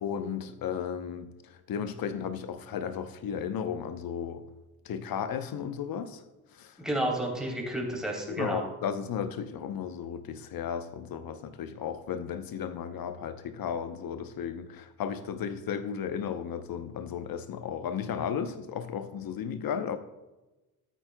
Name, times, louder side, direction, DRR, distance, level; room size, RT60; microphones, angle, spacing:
voice 1, 0.0-1.3 1.7-4.4 4.8-6.2 6.6-6.7 8.3-20.0, left 7 dB, 50° left, 11 dB, 0.9 m, -34 dB
voice 2, 6.8-8.6, right 1 dB, ahead, -2 dB, 3.3 m, -31 dB
13.5 x 8.8 x 2.3 m, 1.1 s
hypercardioid pair, 55°, 43 cm